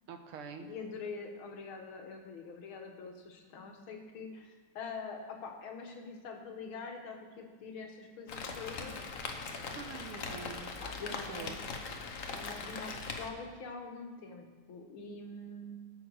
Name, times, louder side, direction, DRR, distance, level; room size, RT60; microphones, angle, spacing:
voice 1, 0.1-0.7 9.7-10.7 11.0-11.6, right 6 dB, 80° right, 6 dB, 1.9 m, -46 dB
voice 2, 0.6-9.7 10.8-12.0 12.3-15.8, left 4 dB, 70° left, 2 dB, 2.2 m, -45 dB
Rain, 8.3-13.3, left 4 dB, 50° left, 1.0 m, -40 dB
13.5 x 7.6 x 6.2 m, 1.5 s
omnidirectional pair, 2.4 m